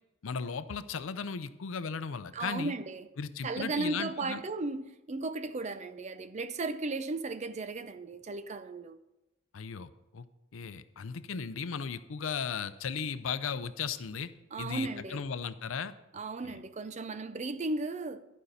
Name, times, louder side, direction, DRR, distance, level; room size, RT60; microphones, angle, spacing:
voice 1, 0.2-2.7 3.2-4.4 9.5-10.3 10.5-14.3 14.6-15.9 16.4-16.6, left 6 dB, 75° left, 0.5 m, -36 dB
voice 2, 2.3-3.1 3.4-9.0 14.5-15.2 16.1-18.2, right 3 dB, 35° right, 0.5 m, -35 dB
11.5 x 5.4 x 6.5 m
head